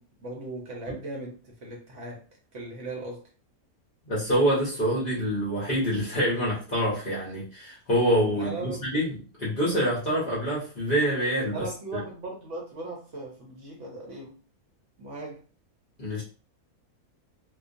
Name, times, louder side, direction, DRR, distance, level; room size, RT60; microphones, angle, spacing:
voice 1, 0.0-3.3 8.3-8.9 11.5-14.4 15.0-15.4, right 2 dB, 60° right, 0.9 m, -38 dB
voice 2, 4.0-12.0 16.0-16.2, equal, 45° left, 0.7 m, -26 dB
2.4 x 2.3 x 2.5 m
omnidirectional pair, 1.6 m